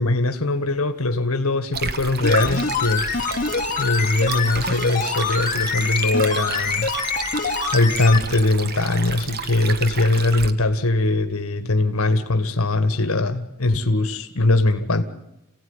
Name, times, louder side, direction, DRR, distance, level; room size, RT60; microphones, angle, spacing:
voice 1, 0.0-3.0 3.8-6.9 7.7-15.0, left 2 dB, 75° left, 8 dB, 1.8 m, -21 dB
Stream, 1.7-10.5, right 5 dB, 45° right, 1.3 m, -32 dB
sound 1, 2.2-8.3 8.5-8.6, left 4 dB, 35° left, 2.6 m, -25 dB
28.5 x 17.0 x 9.9 m, 0.89 s
head